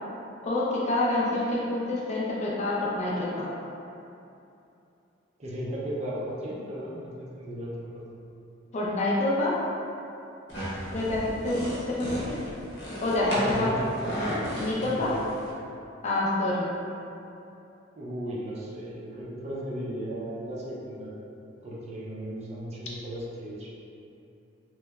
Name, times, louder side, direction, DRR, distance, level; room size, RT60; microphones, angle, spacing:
voice 1, 0.4-3.5 8.7-9.6 10.9-12.4 13.0-13.7 14.6-15.1 16.0-16.7, left 2 dB, 40° left, -5 dB, 0.3 m, -27 dB
voice 2, 5.4-8.0 13.2-14.1 14.7-15.2 18.0-21.1 21.6-23.7, right 1 dB, 35° right, -6 dB, 0.4 m, -35 dB
sound 1, 10.5-15.5, equal, 65° left, 0.7 m, -35 dB
2.8 x 2.1 x 2.2 m, 2.8 s
head